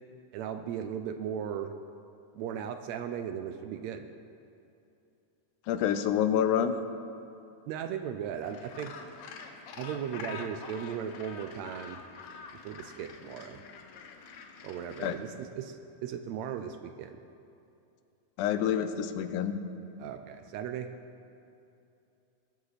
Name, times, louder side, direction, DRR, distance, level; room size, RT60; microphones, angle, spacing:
voice 1, 0.3-1.7 2.4-4.1 7.7-8.9 9.8-12.0 12.6-13.6 14.6-17.2 20.0-20.9, right 8 dB, 80° right, 7 dB, 1.7 m, -37 dB
voice 2, 5.7-6.7 15.0-15.2 18.4-19.6, left 9 dB, 90° left, 10 dB, 2.2 m, -27 dB
Gull seagull, 8.4-15.1, left 5 dB, 70° left, 2.0 m, -46 dB
20.5 x 8.0 x 4.1 m, 2.7 s
omnidirectional pair, 3.5 m